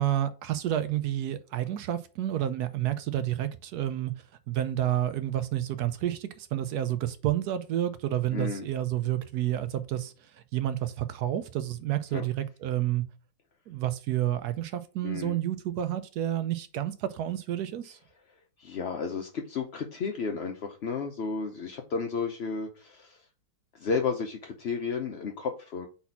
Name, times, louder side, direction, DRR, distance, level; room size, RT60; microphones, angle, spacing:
voice 1, 0.0-4.1 4.5-13.0 13.7-18.0, right 12 dB, 70° right, 1.0 m, -30 dB
voice 2, 8.3-8.7 12.1-12.2 15.0-15.4 18.6-23.2 23.7-25.9, left 5 dB, 65° left, 0.6 m, -32 dB
4.2 x 4.1 x 5.6 m
omnidirectional pair, 2.0 m